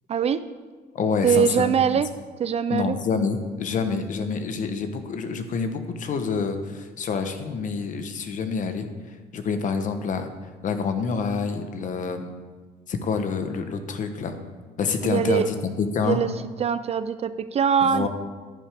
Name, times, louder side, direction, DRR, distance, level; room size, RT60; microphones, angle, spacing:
voice 1, 0.1-0.4 1.2-2.1 2.4-3.0 15.0-15.5 16.0-16.3 16.6-18.1, right 7 dB, 40° right, 13 dB, 0.4 m, -22 dB
voice 2, 0.9-1.8 2.7-8.9 9.3-10.3 10.6-12.3 12.9-14.4 14.8-16.2 17.8-18.1, left 5 dB, 50° left, 8 dB, 1.0 m, -27 dB
11.0 x 9.8 x 3.5 m, 1.4 s
cardioid pair, 110°, 17 cm